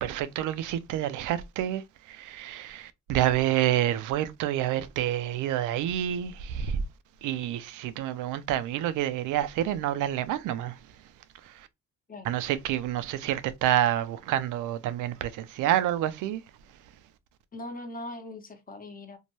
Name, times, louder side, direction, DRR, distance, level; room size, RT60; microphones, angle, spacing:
voice 1, 0.0-6.8 7.2-10.8 11.4-11.7 12.3-16.4, right 12 dB, 90° right, 0.5 m, -28 dB
voice 2, 17.5-19.2, left 2 dB, 30° left, 0.8 m, -40 dB
2.7 x 2.2 x 3.0 m
cardioid pair, 90°, 30 cm